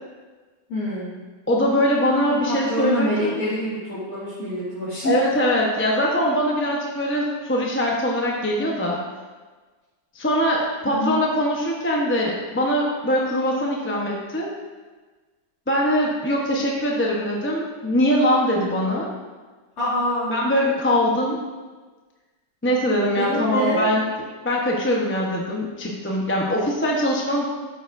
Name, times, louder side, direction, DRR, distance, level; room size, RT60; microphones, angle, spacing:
voice 1, 0.7-1.1 2.4-5.1 10.8-11.2 19.8-20.4 23.1-23.8, equal, 50° left, -12 dB, 2.9 m, -26 dB
voice 2, 1.5-3.4 5.0-9.0 10.1-14.5 15.7-19.1 20.3-21.4 22.6-24.1 24.4-27.5, equal, 10° left, -3 dB, 0.6 m, -22 dB
13.0 x 6.9 x 2.6 m, 1.3 s
omnidirectional pair, 2.0 m